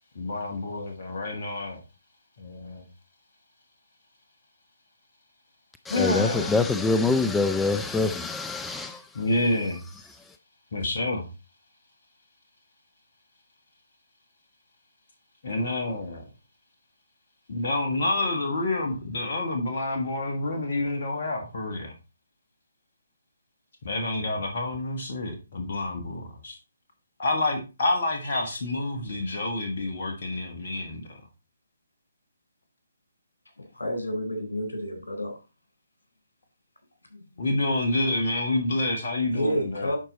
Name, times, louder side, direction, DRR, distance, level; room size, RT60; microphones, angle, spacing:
voice 1, 0.2-1.8 2.4-2.9 5.9-6.5 9.1-9.8 10.7-11.3 15.4-16.2 17.5-21.9 23.8-26.6 27.2-31.1 37.4-39.9, left 2 dB, 45° left, 1.6 m, -28 dB
voice 2, 5.8-9.2 10.3-10.4, left 3 dB, 5° left, 0.4 m, -25 dB
voice 3, 33.6-35.3 37.1-37.5 39.3-40.0, equal, 70° left, 3.8 m, -30 dB
11.0 x 4.6 x 4.1 m
figure-of-eight pair, 140°, 0 cm